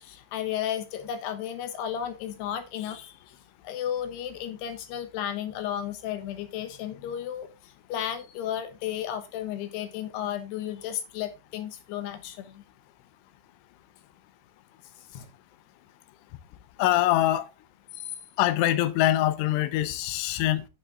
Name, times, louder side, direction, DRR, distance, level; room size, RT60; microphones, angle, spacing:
voice 1, 0.0-3.2 3.6-12.6 15.1-15.3 17.9-18.1, left 10 dB, 75° left, 2.8 m, -33 dB
voice 2, 16.8-17.5 18.4-20.7, left 14 dB, 90° left, 3.3 m, -24 dB
9.4 x 7.4 x 3.8 m
omnidirectional pair, 5.5 m